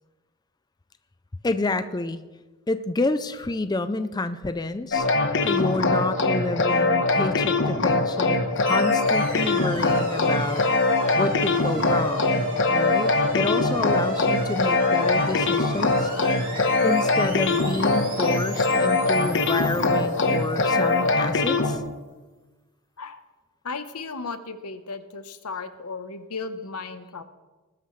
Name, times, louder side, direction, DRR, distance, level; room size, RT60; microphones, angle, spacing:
voice 1, 1.4-2.2 2.7-5.1 5.4-10.6 11.2-12.4 12.7-16.1 16.8-21.8, left 2 dB, 20° left, 11 dB, 0.4 m, -28 dB
sound 1, 4.9-21.8, left 3 dB, 55° left, 1.1 m, -22 dB
sound 2, 8.6-20.9, equal, 40° right, 3.1 m, -35 dB
voice 2, 23.6-27.2, left 4 dB, 90° left, 10 dB, 1.0 m, -35 dB
20.5 x 12.5 x 3.2 m, 1.2 s
head